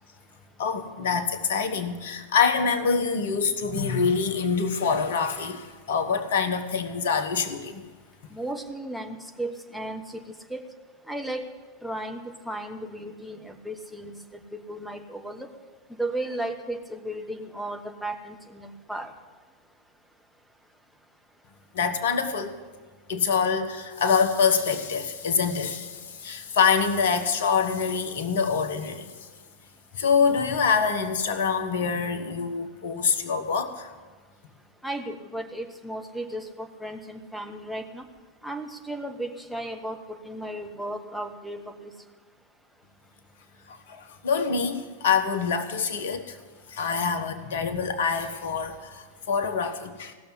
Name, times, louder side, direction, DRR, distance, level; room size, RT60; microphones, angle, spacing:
voice 1, 0.6-7.8 21.7-22.5 23.1-29.1 29.9-33.9 43.7-46.4 46.7-50.1, left 5 dB, 60° left, 10 dB, 1.1 m, -25 dB
voice 2, 8.3-10.2 10.5-10.6 11.1-11.5 11.8-14.2 14.5-15.5 15.9-19.1 34.8-38.0 38.4-41.9, right 1 dB, ahead, 5 dB, 1.2 m, -35 dB
16.5 x 6.8 x 9.8 m, 1.4 s
figure-of-eight pair, 90°, 0 cm